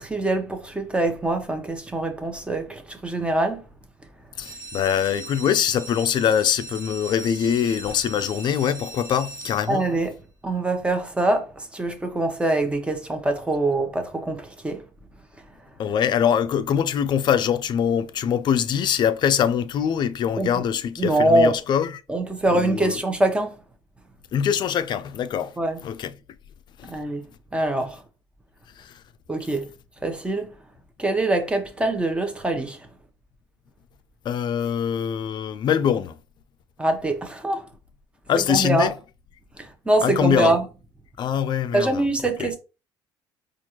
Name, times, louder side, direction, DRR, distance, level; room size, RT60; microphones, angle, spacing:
voice 1, 0.0-3.7 9.7-10.1 10.4-14.8 20.4-20.6 21.0-21.5 22.1-23.6 25.6-25.8 26.8-27.3 27.5-28.0 29.3-29.7 30.0-30.5 31.0-32.9 36.8-37.7 38.3-38.9 39.6-40.6 41.7-42.6, right 2 dB, 10° right, 0.9 m, -24 dB
sound 1, 4.3-10.1 10.7-11.2 11.6-11.7 11.9-12.0 12.4-12.5, right 3 dB, 50° right, 1.4 m, -39 dB
voice 2, 4.4-9.9 15.8-21.9 22.5-23.0 24.3-25.6 25.8-26.1 26.8-26.9 28.8-29.0 34.2-36.2 38.3-38.9 40.0-40.5 41.2-42.0 42.4-42.5, left 8 dB, 50° left, 0.4 m, -23 dB
4.4 x 2.5 x 2.9 m
cardioid pair, 100°, 10 cm